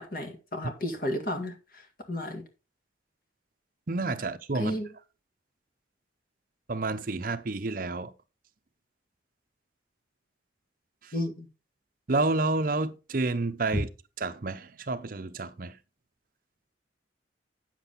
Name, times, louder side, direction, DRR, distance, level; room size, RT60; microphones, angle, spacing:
voice 1, 0.0-2.4 4.5-4.9 11.1-11.5 13.7-13.8, left 1 dB, 50° left, 1.9 m, -33 dB
voice 2, 3.9-4.7 6.7-8.1 12.1-13.9 14.2-15.7, right 3 dB, 45° right, 0.6 m, -29 dB
8.9 x 7.6 x 4.0 m
head